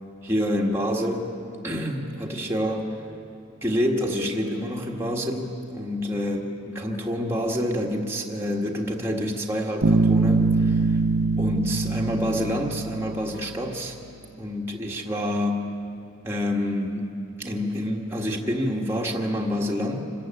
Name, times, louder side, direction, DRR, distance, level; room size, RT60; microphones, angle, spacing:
voice 1, 0.2-1.3 1.6-2.9 3.6-11.0 11.4-14.0 14.4-15.7 16.2-17.1 17.4-20.0, equal, 10° right, -1 dB, 1.6 m, -27 dB
Bass guitar, 9.8-13.5, right 3 dB, 70° right, 0.8 m, -23 dB
26.0 x 14.5 x 8.9 m, 2.8 s
head